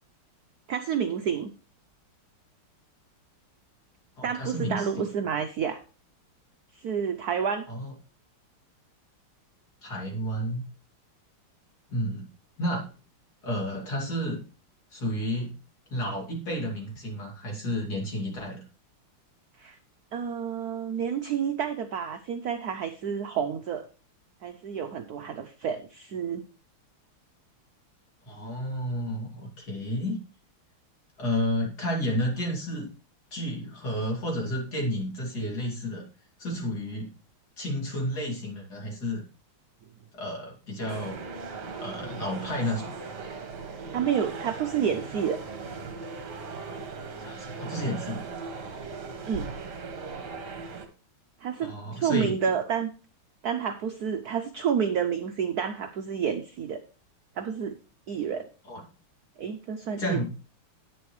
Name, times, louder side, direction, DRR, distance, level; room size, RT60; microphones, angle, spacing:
voice 1, 0.7-1.5 4.2-5.8 6.7-7.7 19.6-19.8 20.1-23.9 24.4-26.4 43.9-45.4 49.3-49.5 51.4-52.9 53.4-56.8 57.4-57.8 58.1-58.5 59.4-60.2, right 7 dB, 70° right, 8 dB, 0.9 m, -29 dB
voice 2, 4.2-4.9 7.7-7.9 9.8-10.7 11.9-12.3 12.6-12.8 13.4-14.4 14.9-15.6 15.9-18.6 28.3-30.2 31.2-32.9 33.3-36.1 36.4-37.1 37.6-39.2 40.1-41.2 41.8-42.9 47.2-48.2 51.6-52.3 58.7-58.8 60.0-60.3, equal, 45° left, 0 dB, 3.3 m, -31 dB
sound 1, 40.8-50.9, right 4 dB, 55° right, 1.9 m, -38 dB
10.5 x 9.2 x 3.2 m, 0.36 s
omnidirectional pair, 2.4 m